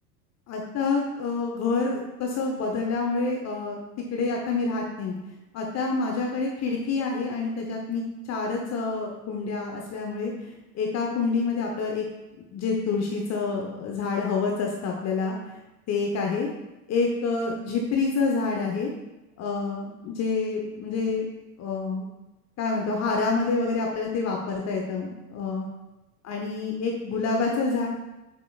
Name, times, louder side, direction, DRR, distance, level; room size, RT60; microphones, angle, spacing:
voice 1, 0.5-3.8 4.1-5.1 5.5-8.0 8.3-10.3 10.7-12.0 12.4-15.3 15.9-16.5 16.9-18.9 19.4-21.3 21.6-22.0 22.6-25.7 26.2-27.9, left 4 dB, 35° left, 0 dB, 0.9 m, -27 dB
7.6 x 5.1 x 2.4 m, 1.0 s
hypercardioid pair, 80°, 47 cm